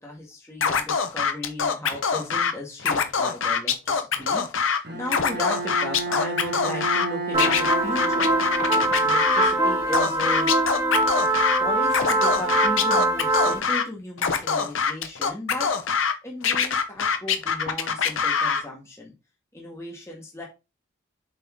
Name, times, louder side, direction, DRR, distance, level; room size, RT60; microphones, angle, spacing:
voice 1, 0.0-8.3 8.7-10.5 11.3-19.1 19.5-20.4, left 1 dB, 15° left, -2 dB, 1.8 m, -36 dB
Scratching (performance technique), 0.6-2.5 2.8-4.8 5.1-7.1 7.4-9.5 9.9-11.6 11.9-13.8 14.2-16.1 16.4-18.6, left 6 dB, 85° left, 1.0 m, -24 dB
Bowed string instrument, 4.8-9.4, right 3 dB, 50° right, 1.6 m, -32 dB
sound 1, 7.3-13.6, right 1 dB, 20° right, 2.3 m, -23 dB
7.5 x 4.2 x 3.7 m, 0.27 s
head